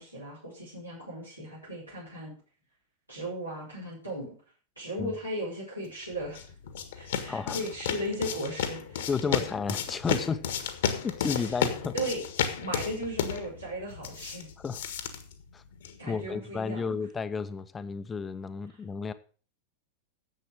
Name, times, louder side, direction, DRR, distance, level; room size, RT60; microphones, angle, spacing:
voice 1, 0.0-2.3 3.1-4.3 4.7-6.4 6.9-9.4 11.9-12.2 12.6-14.5 16.0-16.9, right 1 dB, 90° right, 5.1 m, -36 dB
sound 1, 6.0-16.0, left 8 dB, 60° left, 1.6 m, -33 dB
voice 2, 7.3-7.6 9.1-10.4 11.0-11.9 14.6-14.8 15.5-15.6 16.1-19.1, left 5 dB, 15° left, 0.9 m, -32 dB
10.5 x 7.7 x 6.5 m
figure-of-eight pair, 90°, 0 cm